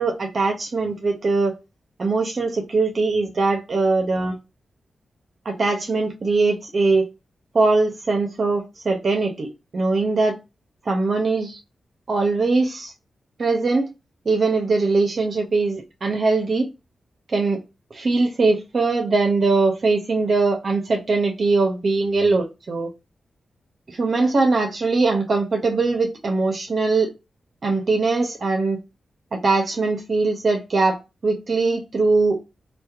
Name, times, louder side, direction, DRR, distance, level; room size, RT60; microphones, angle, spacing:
voice 1, 0.0-1.5 2.0-4.3 5.5-7.1 7.5-10.4 10.9-11.6 12.1-12.9 13.4-13.9 14.3-16.7 17.3-17.6 17.9-22.9 23.9-27.1 27.6-28.8 29.3-31.0 31.2-32.4, right 3 dB, 55° right, 0.5 m, -21 dB
2.7 x 2.1 x 2.3 m
cardioid pair, 65°, 0 cm